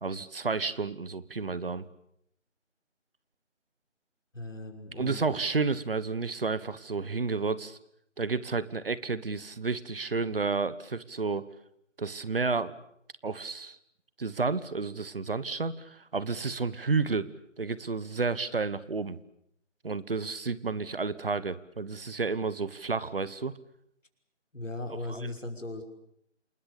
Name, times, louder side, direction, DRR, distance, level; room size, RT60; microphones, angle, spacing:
voice 1, 0.0-1.9 4.9-7.8 8.2-11.5 12.0-12.7 13.2-13.8 14.2-17.3 17.6-19.2 19.8-23.5 25.1-25.3, right 4 dB, 50° right, 17 dB, 1.4 m, -31 dB
voice 2, 4.3-5.3 24.5-25.8, left 2 dB, 85° left, 4 dB, 6.0 m, -38 dB
28.5 x 20.5 x 8.4 m, 0.73 s
figure-of-eight pair, 165°, 37 cm